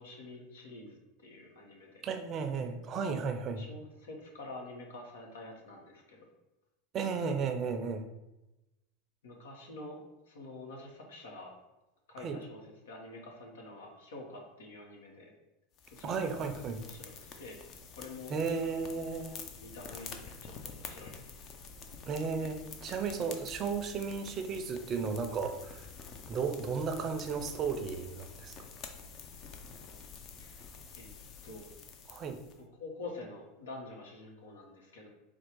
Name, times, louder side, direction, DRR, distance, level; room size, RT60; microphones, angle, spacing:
voice 1, 0.0-2.0 3.6-6.3 7.8-7.9 9.2-10.0 10.3-11.5 12.1-15.3 15.9-16.3 16.8-17.5 18.0-18.3 19.6-21.5 30.4-30.7 30.9-31.1 31.4-31.7 32.6-35.1, left 2 dB, 85° left, 0 dB, 1.2 m, -47 dB
voice 2, 2.0-3.6 6.9-8.1 12.2-12.4 16.0-16.8 18.3-19.4 22.1-25.8 26.3-28.5 32.1-32.4, right 5 dB, 40° right, 7 dB, 0.5 m, -34 dB
sound 1, 15.8-32.6, left 5 dB, 45° left, 0.6 m, -48 dB
4.4 x 2.3 x 4.6 m, 0.97 s
hypercardioid pair, 110°, 0 cm